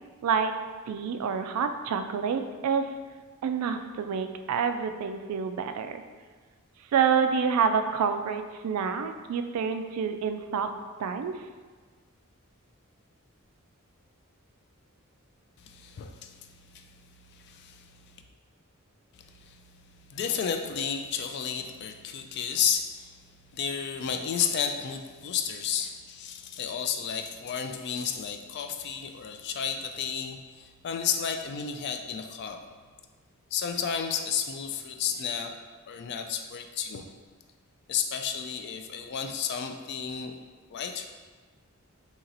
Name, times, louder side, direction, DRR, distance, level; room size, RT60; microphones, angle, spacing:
voice 1, 0.2-0.5 0.9-2.9 3.4-6.0 6.9-10.7 11.0-11.3, right 6 dB, 90° right, 8 dB, 0.3 m, -27 dB
voice 2, 15.6-16.9 17.3-17.9 19.3-19.6 20.1-23.2 23.5-32.6 33.5-35.5 35.9-37.0 37.9-41.0, left 7 dB, 50° left, 5 dB, 0.3 m, -32 dB
2.9 x 2.8 x 3.9 m, 1.4 s
head